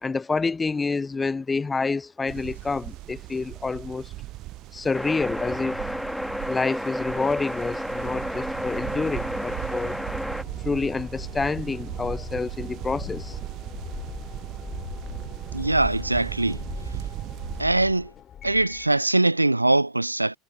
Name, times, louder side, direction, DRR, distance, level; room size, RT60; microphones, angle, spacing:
voice 1, 0.0-4.1 4.7-5.8 6.5-10.0 10.6-13.4, left 4 dB, 20° left, 0.4 m, -28 dB
sound 1, 2.3-17.6, right 17 dB, 50° right, 0.7 m, -37 dB
sound 2, 4.9-10.4, equal, ahead, 1.4 m, -31 dB
sound 3, 8.4-19.0, left 9 dB, 35° left, 2.6 m, -41 dB
voice 2, 15.5-16.6 17.6-18.1 18.4-20.4, right 2 dB, 85° right, 0.3 m, -22 dB
figure-of-eight pair, 70°, 0 cm